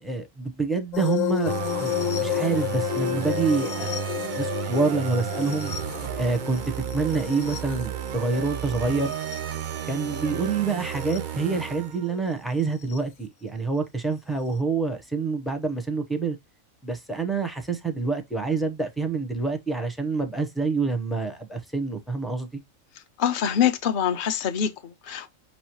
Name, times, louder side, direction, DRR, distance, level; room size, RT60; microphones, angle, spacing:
voice 1, 0.0-5.7 6.2-6.6 6.9-9.1 9.9-16.4 16.8-22.5, right 4 dB, ahead, 0.5 m, -27 dB
sound 1, 0.9-9.6 10.9-11.2 12.9-13.0, left 12 dB, 75° left, 1.0 m, -31 dB
sound 2, 1.5-12.3, right 10 dB, 75° right, 0.4 m, -33 dB
voice 2, 23.2-25.4, left 9 dB, 55° left, 0.6 m, -25 dB
5.5 x 3.1 x 2.9 m
omnidirectional pair, 1.4 m